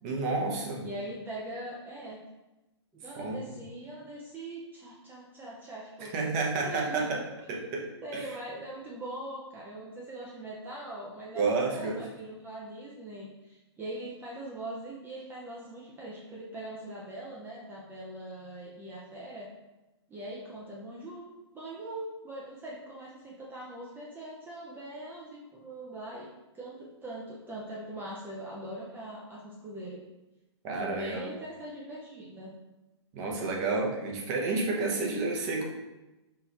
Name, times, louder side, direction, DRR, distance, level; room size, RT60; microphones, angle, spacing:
voice 1, 0.0-0.9 3.2-3.5 6.0-7.2 7.5-7.8 8.1-8.3 11.3-12.0 30.6-31.3 33.1-35.6, right 3 dB, 35° right, -1 dB, 0.9 m, -30 dB
voice 2, 0.8-2.2 2.9-6.1 6.6-7.1 7.8-19.5 20.1-26.3 26.5-30.0 30.8-32.5, right 1 dB, 15° right, -5 dB, 0.5 m, -41 dB
4.7 x 2.6 x 3.2 m, 1.0 s
hypercardioid pair, 125°, 15 cm